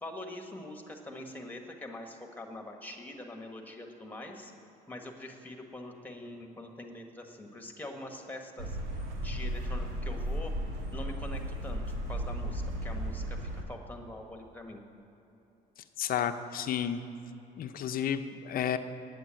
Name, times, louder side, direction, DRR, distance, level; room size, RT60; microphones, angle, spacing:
voice 1, 0.0-4.5 4.9-8.8 9.2-10.5 10.9-14.8, left 1 dB, 10° left, 3 dB, 1.5 m, -44 dB
sound 1, 8.6-13.6, equal, 85° right, 1.4 m, -35 dB
voice 2, 16.0-17.0 17.6-18.8, left 9 dB, 60° left, 8 dB, 0.7 m, -31 dB
9.1 x 8.0 x 8.9 m, 2.9 s
cardioid pair, 110°, 17 cm